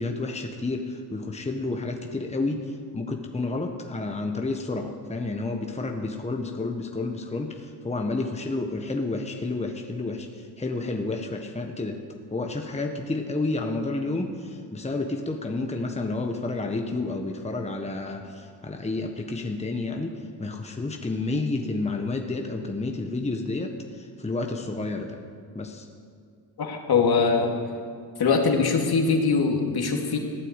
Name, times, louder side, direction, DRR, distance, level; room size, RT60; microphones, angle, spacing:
voice 1, 0.0-12.0 12.3-25.2 25.5-25.9, left 2 dB, 15° left, 3 dB, 1.4 m, -30 dB
voice 2, 26.6-27.5 28.2-30.2, left 4 dB, 55° left, 2 dB, 2.5 m, -22 dB
15.0 x 8.9 x 8.3 m, 2.2 s
supercardioid pair, 65°, 44 cm